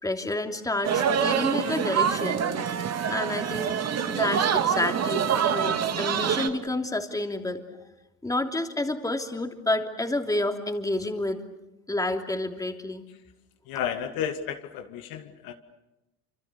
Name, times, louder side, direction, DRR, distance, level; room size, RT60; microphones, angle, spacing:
voice 1, 0.0-2.4 3.1-3.7 4.1-7.6 8.2-11.4 11.9-13.0, left 2 dB, 10° left, 4 dB, 3.1 m, -29 dB
sound 1, 0.8-6.5, right 7 dB, 35° right, 2.4 m, -25 dB
voice 2, 13.7-15.5, left 8 dB, 55° left, 7 dB, 2.1 m, -32 dB
29.0 x 27.0 x 6.9 m, 0.97 s
hypercardioid pair, 75°, 42 cm